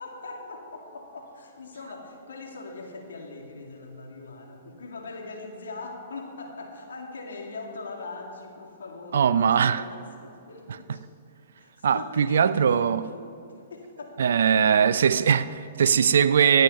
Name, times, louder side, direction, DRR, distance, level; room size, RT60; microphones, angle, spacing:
voice 1, 0.0-11.0 11.6-15.0, left 3 dB, 80° left, 2.3 m, -41 dB
voice 2, 9.1-9.8 11.8-13.0 14.2-16.6, right 7 dB, 70° right, 0.4 m, -20 dB
16.0 x 9.3 x 5.4 m
hypercardioid pair, 125°, 0 cm